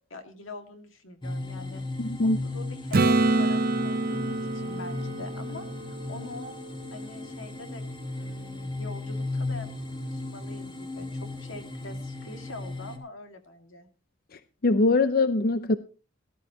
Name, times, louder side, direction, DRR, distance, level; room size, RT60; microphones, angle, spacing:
voice 1, 0.1-5.6 6.1-6.6 6.9-7.8 8.1-13.9, left 2 dB, 90° left, 2.2 m, -44 dB
sound 1, 1.2-13.0, left 2 dB, 25° left, 1.7 m, -36 dB
voice 2, 2.0-2.4 14.6-15.8, left 2 dB, 50° left, 0.6 m, -22 dB
Acoustic guitar / Strum, 2.9-6.7 11.5-11.6, right 2 dB, 50° right, 0.7 m, -27 dB
18.0 x 12.0 x 3.0 m
head